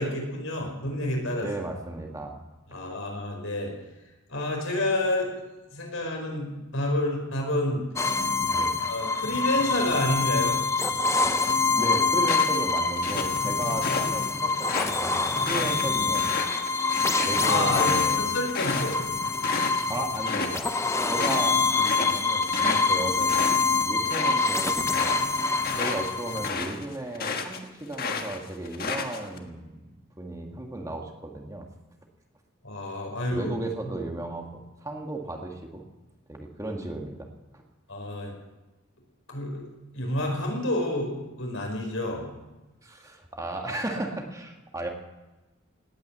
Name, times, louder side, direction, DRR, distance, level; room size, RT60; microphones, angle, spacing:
voice 1, 0.0-1.5 2.7-3.7 4.3-5.3 5.7-7.8 8.9-10.6 17.4-19.0 21.2-21.3 32.6-33.5 33.8-33.9 37.9-38.3 39.3-39.6 39.9-42.2, left 1 dB, 70° left, 1 dB, 5.1 m, -29 dB
voice 2, 1.4-2.4 8.5-8.8 11.2-11.4 11.8-16.4 17.2-18.3 19.9-20.7 21.0-23.4 23.8-25.2 25.7-31.7 33.3-35.9 36.3-37.3 37.5-37.6 42.8-44.9, right 2 dB, 15° right, 2 dB, 1.7 m, -35 dB
sound 1, 8.0-26.5, left 4 dB, 15° left, 0.7 m, -25 dB
sound 2, 12.2-14.1 14.5-19.8 20.1-20.6 20.9-27.6 27.9-29.4, left 4 dB, 45° left, 1.5 m, -32 dB
18.5 x 9.5 x 8.1 m, 1.1 s
head